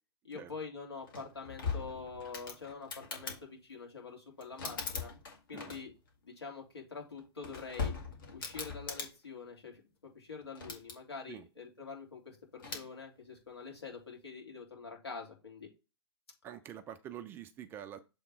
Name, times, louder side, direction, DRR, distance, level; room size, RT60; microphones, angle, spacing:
voice 1, 0.2-5.1 5.5-5.9 6.2-7.9 8.3-15.7, left 5 dB, 70° left, 3.0 m, -46 dB
sound 1, 1.1-3.4 4.4-6.1 7.2-9.1 10.4-10.9 12.6-12.9, left 5 dB, 55° left, 2.0 m, -40 dB
voice 2, 16.4-18.0, right 10 dB, 15° right, 0.4 m, -46 dB
7.1 x 3.5 x 4.5 m
figure-of-eight pair, 115°, 14 cm